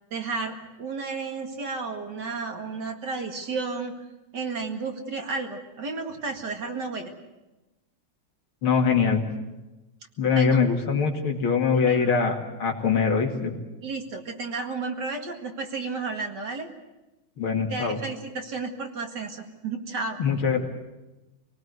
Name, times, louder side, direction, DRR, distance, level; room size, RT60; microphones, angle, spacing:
voice 1, 0.1-3.9 4.3-7.1 10.3-10.6 11.9-12.1 13.8-16.7 17.7-20.2, right 4 dB, 55° right, 3 dB, 2.6 m, -32 dB
voice 2, 8.6-9.2 10.2-13.5 17.4-18.0 20.2-20.6, left 6 dB, 90° left, 2 dB, 3.2 m, -23 dB
25.5 x 18.5 x 8.1 m, 1.1 s
omnidirectional pair, 2.2 m